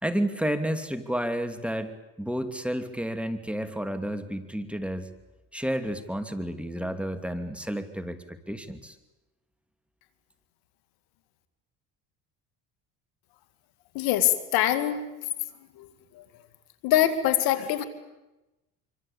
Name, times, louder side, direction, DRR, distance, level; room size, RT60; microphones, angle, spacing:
voice 1, 0.0-5.1 5.5-9.0, equal, 5° right, 9 dB, 2.8 m, -31 dB
voice 2, 13.9-15.1 15.8-15.9 16.1-16.2 16.8-17.8, left 12 dB, 80° left, 11 dB, 2.6 m, -24 dB
26.0 x 25.0 x 8.8 m, 1.0 s
supercardioid pair, 85°, 36 cm